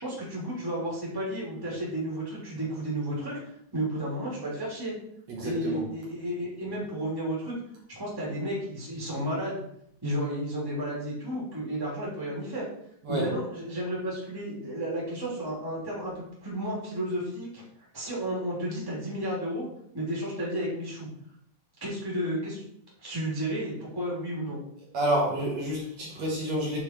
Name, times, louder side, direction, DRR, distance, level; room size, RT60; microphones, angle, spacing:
voice 1, 0.0-3.4 3.7-4.9 5.4-7.6 8.0-9.6 10.0-12.7 13.1-17.6 17.9-19.7 19.9-21.1 21.8-22.6 23.0-24.6, right 1 dB, 5° right, -5 dB, 2.6 m, -32 dB
voice 2, 5.3-5.8 13.0-13.3 24.9-26.8, right 1 dB, 60° right, -4 dB, 2.8 m, -29 dB
8.8 x 4.5 x 4.4 m, 0.71 s
omnidirectional pair, 3.5 m